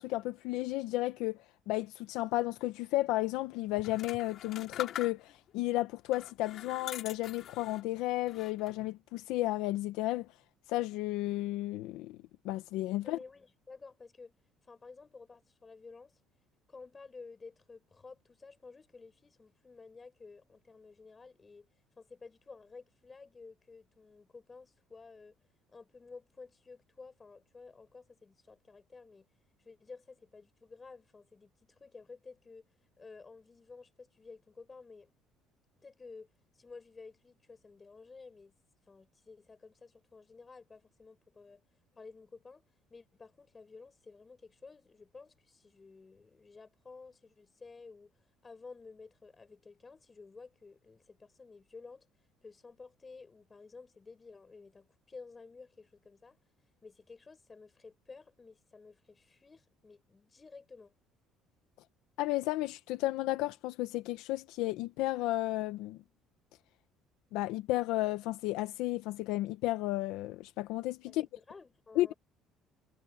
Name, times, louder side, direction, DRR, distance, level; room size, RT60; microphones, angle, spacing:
voice 1, 0.0-10.3 10.7-12.2 12.4-13.2 62.2-66.0 67.3-71.3 71.9-72.1, left 17 dB, 75° left, 1.0 m, -33 dB
sound 1, 3.8-5.5 6.1-7.9 8.3-8.9, left 10 dB, 40° left, 3.7 m, -44 dB
voice 2, 13.0-14.3 14.6-16.2 16.7-21.7 22.0-25.3 25.7-29.3 29.6-32.7 33.0-35.1 35.8-36.3 36.5-38.5 38.9-41.6 41.9-48.1 48.4-52.1 52.4-56.4 56.8-60.9 71.1-72.1, left 4 dB, 15° left, 6.8 m, -53 dB
cardioid pair, 180°, 0 cm